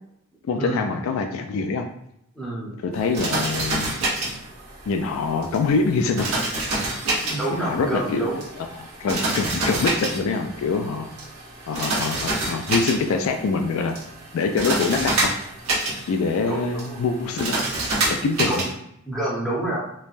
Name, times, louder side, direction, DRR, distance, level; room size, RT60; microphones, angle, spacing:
voice 1, 0.4-1.9 2.8-3.9 4.9-6.3 7.6-8.3 8.6-11.0 11.7-14.0 14.3-15.3 16.1-17.6 18.1-18.6, left 4 dB, 75° left, 6 dB, 0.3 m, -24 dB
voice 2, 2.3-2.8 7.1-8.5 16.5-17.0 18.5-18.7 19.1-19.8, right 1 dB, 5° left, -7 dB, 0.8 m, -28 dB
sound 1, 2.9-18.7, right 2 dB, 85° right, 1.0 m, -28 dB
3.1 x 2.1 x 2.5 m, 0.76 s
head